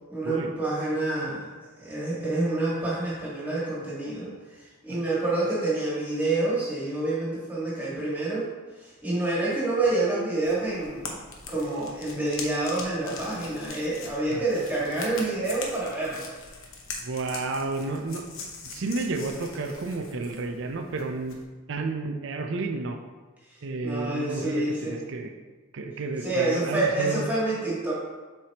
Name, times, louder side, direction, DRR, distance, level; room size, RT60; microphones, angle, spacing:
voice 1, 0.1-1.5 1.8-8.5 8.8-11.0 11.5-16.3 23.8-25.0 26.2-27.9, right 2 dB, 10° right, -8 dB, 1.6 m, -28 dB
sound 1, 10.4-21.4, left 4 dB, 65° left, 0.9 m, -42 dB
voice 2, 17.0-21.4 21.7-23.0 23.6-25.3 25.7-27.2, right 3 dB, 60° right, 5 dB, 0.5 m, -31 dB
7.5 x 4.6 x 2.9 m, 1.3 s
head